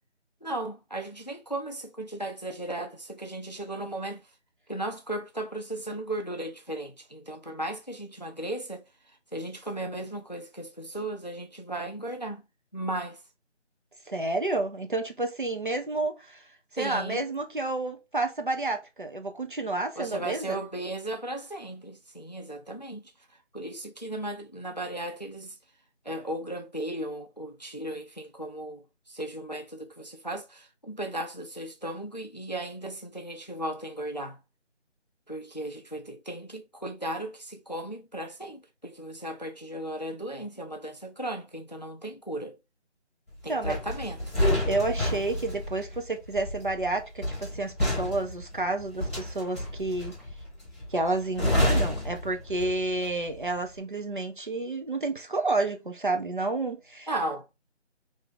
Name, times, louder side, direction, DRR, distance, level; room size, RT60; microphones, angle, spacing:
voice 1, 0.4-4.2 4.7-12.4 12.7-13.2 16.8-17.2 20.0-23.1 23.5-25.6 26.0-34.4 35.3-42.6 43.4-44.3 57.1-57.5, right 1 dB, 40° left, 0.4 m, -36 dB
voice 2, 14.1-16.4 16.7-20.6 43.5-43.8 44.7-50.1 50.9-57.1, right 2 dB, 45° right, 0.6 m, -30 dB
sound 1, 43.6-53.0 53.3-53.6, left 1 dB, 15° right, 1.1 m, -29 dB
3.4 x 2.6 x 3.7 m
figure-of-eight pair, 170°, 35 cm